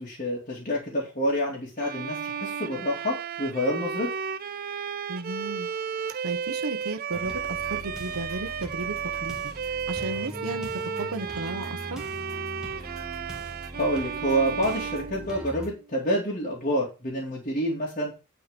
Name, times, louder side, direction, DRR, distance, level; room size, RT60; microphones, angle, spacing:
voice 1, 0.0-4.1 13.7-18.1, equal, 40° left, -4 dB, 2.7 m, -28 dB
Bowed string instrument, 1.8-15.9, right 7 dB, 45° right, 0.4 m, -33 dB
voice 2, 5.1-5.7 6.2-8.9 9.2-9.4 9.9-10.7 11.0-12.0, right 2 dB, 90° right, 8 dB, 1.1 m, -34 dB
sound 1, 7.1-15.7, equal, 5° right, 1.9 m, -41 dB
9.0 x 4.9 x 5.1 m, 0.30 s
head